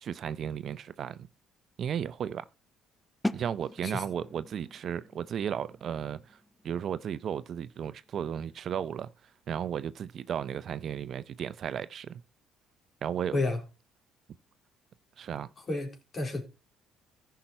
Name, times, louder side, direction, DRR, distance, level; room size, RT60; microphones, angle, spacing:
voice 1, 0.0-1.3 1.8-2.5 3.3-6.4 6.6-9.1 9.5-12.2 13.0-13.4 15.2-15.5, right 8 dB, 55° right, 0.6 m, -34 dB
sound 1, 3.2-9.0, left 1 dB, 5° left, 0.7 m, -41 dB
voice 2, 15.6-16.4, left 2 dB, 35° left, 3.8 m, -31 dB
14.0 x 5.8 x 4.4 m
supercardioid pair, 70°, 0 cm